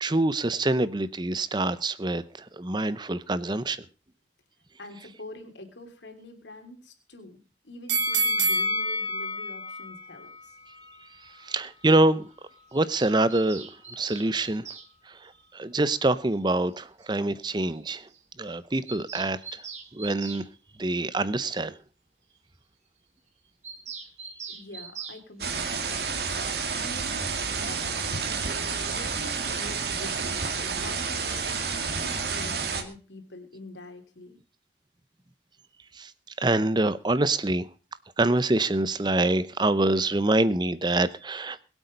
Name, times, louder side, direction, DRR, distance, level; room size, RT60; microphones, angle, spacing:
voice 1, 0.0-3.8 11.2-12.3 12.7-14.7 15.1-18.1 18.4-19.7 19.9-20.4 20.8-21.8 35.9-36.1 36.4-37.7 38.2-41.6, right 2 dB, 25° right, 0.7 m, -25 dB
voice 2, 4.8-10.5 24.5-27.3 27.6-34.4, left 2 dB, 80° left, 3.2 m, -45 dB
sound 1, 7.9-11.0 11.4-11.5, right 2 dB, 75° right, 2.2 m, -28 dB
Bird vocalization bird call bird song, 12.7-14.9 16.3-16.4 16.7-16.8 17.0-17.1 17.4-17.5 17.7-17.8 18.1-18.2 18.5-20.5 23.6-25.2, right 6 dB, 40° right, 2.2 m, -42 dB
sound 2, 25.4-32.8, right 5 dB, 60° right, 2.3 m, -30 dB
22.0 x 8.2 x 5.2 m
head